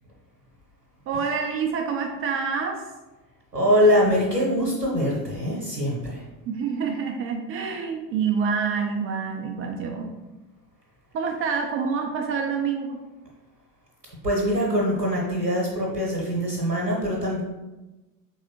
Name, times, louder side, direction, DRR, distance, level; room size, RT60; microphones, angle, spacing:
voice 1, 1.1-2.8 6.5-10.1 11.1-13.0, right 6 dB, 30° right, 3 dB, 0.4 m, -27 dB
voice 2, 3.5-6.2 14.2-17.4, equal, 85° right, -3 dB, 1.1 m, -23 dB
4.7 x 3.5 x 2.9 m, 1.1 s
figure-of-eight pair, 70°, 49 cm